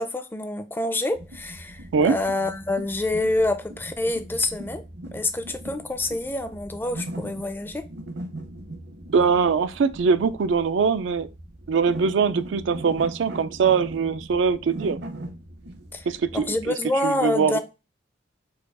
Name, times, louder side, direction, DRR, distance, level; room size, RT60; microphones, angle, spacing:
voice 1, 0.0-4.8 5.1-7.8 15.9-16.1 16.3-17.6, left 2 dB, 10° left, 0.4 m, -27 dB
sound 1, 1.1-16.7, right 1 dB, 60° right, 0.8 m, -39 dB
voice 2, 9.1-11.3 11.7-15.0 16.1-16.7 17.0-17.6, right 5 dB, 75° right, 0.4 m, -22 dB
4.7 x 2.3 x 4.7 m
head